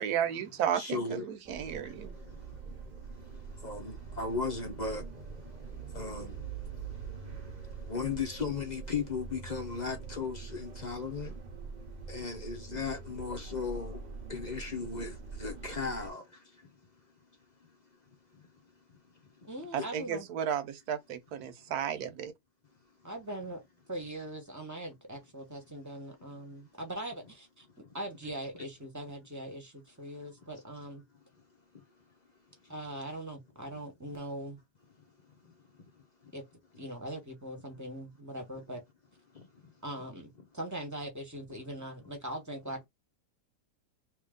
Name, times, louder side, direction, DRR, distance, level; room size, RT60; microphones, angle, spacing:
voice 1, 0.0-2.1 19.7-22.3, right 9 dB, 70° right, 1.1 m, -33 dB
voice 2, 0.7-1.2 1.7-11.4 12.1-14.0 14.3-16.7 17.6-17.7 18.3-18.5 19.8-19.9 27.8-27.9 28.5-28.6 31.7-31.8 32.6-32.7 35.4-35.5 36.0-36.3 38.5-38.6 39.3-39.7, left 5 dB, 40° left, 0.6 m, -38 dB
sound 1, 1.4-16.1, right 5 dB, 40° right, 0.6 m, -44 dB
voice 3, 19.4-20.3 23.0-23.6 23.9-27.7 27.9-31.0 32.7-34.6 36.3-36.4 36.8-38.8 39.8-42.9, right 1 dB, 15° right, 0.9 m, -41 dB
3.1 x 2.8 x 3.6 m
omnidirectional pair, 1.8 m